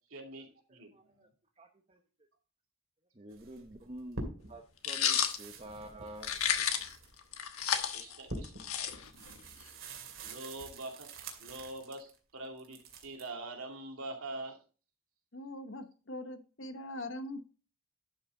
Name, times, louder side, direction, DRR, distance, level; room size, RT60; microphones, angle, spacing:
voice 1, 0.1-1.3 7.9-8.5 8.9-9.0 10.2-11.1 11.4-14.6, right 2 dB, 85° right, 2.6 m, -44 dB
voice 2, 0.7-1.3 1.6-2.0 3.1-6.7 8.8-8.9, right 1 dB, 30° right, 0.9 m, -49 dB
sound 1, 3.3-4.6 4.9-12.2 12.6-13.3, right 2 dB, 70° right, 2.4 m, -46 dB
sound 2, 4.8-5.4 6.2-7.0 7.3-9.3, left 8 dB, 90° left, 1.2 m, -31 dB
voice 3, 15.3-17.4, left 1 dB, 60° left, 1.0 m, -42 dB
11.5 x 5.8 x 3.8 m
head